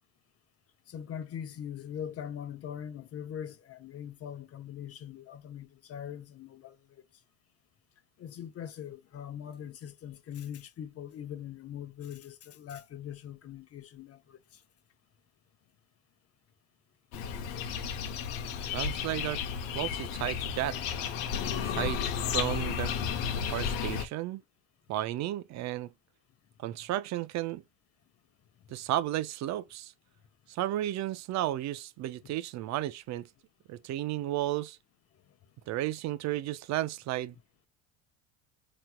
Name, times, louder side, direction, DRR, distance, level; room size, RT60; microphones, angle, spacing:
voice 1, 0.9-7.0 8.2-14.6 32.2-32.3, left 9 dB, 40° left, 0.8 m, -42 dB
sound 1, 17.1-24.1, left 7 dB, 70° left, 0.9 m, -33 dB
voice 2, 18.7-19.4 19.7-20.8 21.6-22.9 23.5-24.4 24.9-25.9 26.6-27.6 28.7-29.9 30.5-33.3 33.7-34.8 35.7-37.3, right 14 dB, 50° right, 0.5 m, -33 dB
4.3 x 3.0 x 2.2 m
supercardioid pair, 100°, 36 cm